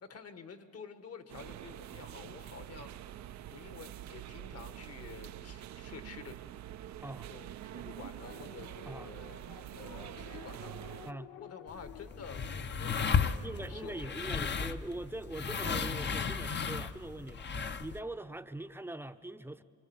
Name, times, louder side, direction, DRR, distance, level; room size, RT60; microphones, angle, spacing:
voice 1, 0.0-2.9 3.5-6.3 7.2-9.4 9.7-11.0 11.4-14.6, left 5 dB, 55° left, 9 dB, 1.6 m, -50 dB
sound 1, 1.3-11.1, right 12 dB, 65° right, 0.6 m, -46 dB
voice 2, 7.0-7.3 8.8-9.1 11.0-11.3 13.4-17.5 17.8-19.6, right 1 dB, 5° right, 9 dB, 0.7 m, -42 dB
sound 2, 8.2-14.2, left 9 dB, 80° left, 0.9 m, -53 dB
sound 3, 11.7-18.0, left 6 dB, 35° left, 0.8 m, -34 dB
26.5 x 25.0 x 7.2 m, 2.2 s
cardioid pair, 90°, 30 cm